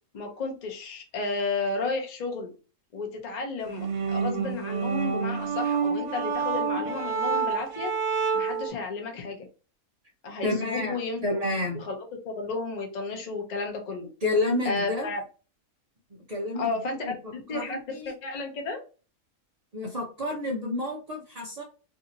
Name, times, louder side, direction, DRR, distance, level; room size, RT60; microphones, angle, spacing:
voice 1, 0.1-2.5 2.9-7.9 8.3-9.4 10.2-11.5 11.7-12.0 12.2-14.1 14.6-15.2 16.6-18.8, left 3 dB, 45° left, 2 dB, 0.5 m, -33 dB
sound 1, 3.7-8.7, right 5 dB, 65° right, 0.9 m, -28 dB
voice 2, 10.4-11.8 14.2-15.1 16.3-17.1 17.5-18.1 19.7-21.6, left 2 dB, 80° right, -1 dB, 0.3 m, -30 dB
2.7 x 2.6 x 2.7 m, 0.34 s
omnidirectional pair, 1.5 m